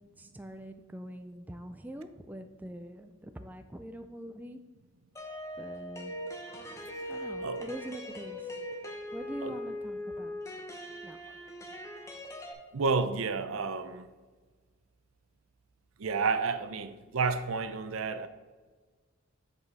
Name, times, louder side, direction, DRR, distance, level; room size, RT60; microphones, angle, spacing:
voice 1, 0.2-4.6 5.6-6.1 7.1-8.6 9.1-10.4 11.0-11.2, right 1 dB, 10° right, 6 dB, 0.3 m, -44 dB
sound 1, 5.2-12.5, equal, 15° left, 0.9 m, -40 dB
voice 2, 12.7-14.1 16.0-18.3, right 4 dB, 80° right, 11 dB, 0.6 m, -31 dB
8.2 x 5.1 x 4.1 m, 1.4 s
head